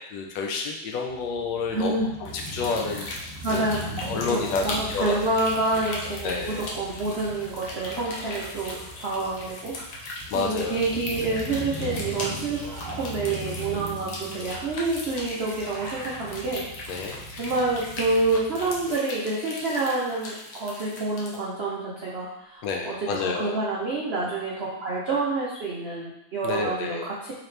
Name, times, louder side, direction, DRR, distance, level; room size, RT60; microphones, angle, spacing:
voice 1, 0.1-1.9 2.2-3.1 3.5-3.6 4.1-5.1 6.2-6.6 10.3-10.8 16.9-17.2 22.6-23.6 26.4-27.1, left 4 dB, 75° left, 1 dB, 1.2 m, -29 dB
Crow / Motorcycle, 1.0-18.9, right 1 dB, 55° right, 1.1 m, -40 dB
voice 2, 1.7-2.1 2.9-3.1 3.4-3.9 4.3-10.1 10.3-12.6 12.9-17.0 17.4-27.3, right 2 dB, 75° right, -6 dB, 0.6 m, -28 dB
sound 1, 2.3-21.4, left 1 dB, 60° left, 0.9 m, -38 dB
Kung Fu Scream, 11.0-11.1 12.6-13.3 14.3-14.6 15.7-16.4 17.4-17.6 18.8-19.5 22.7-22.8, right 1 dB, 25° right, 0.4 m, -42 dB
3.9 x 2.9 x 3.2 m, 0.83 s
omnidirectional pair, 2.1 m